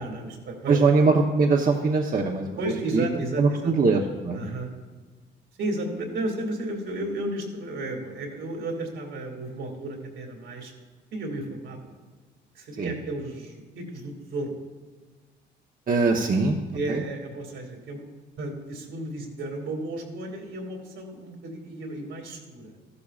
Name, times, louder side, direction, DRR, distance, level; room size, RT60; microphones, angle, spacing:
voice 1, 0.0-0.8 2.6-3.7 4.3-4.7 5.6-10.7 11.1-11.9 12.5-14.6 16.7-18.1 18.4-22.7, right 2 dB, 75° right, 2 dB, 2.4 m, -33 dB
voice 2, 0.7-2.5 2.9-3.1 3.4-4.4 12.8-12.9 15.9-16.6 16.9-17.0, right 4 dB, 45° right, 1 dB, 0.9 m, -21 dB
14.5 x 12.0 x 2.4 m, 1.3 s
cardioid pair, 90°, 20 cm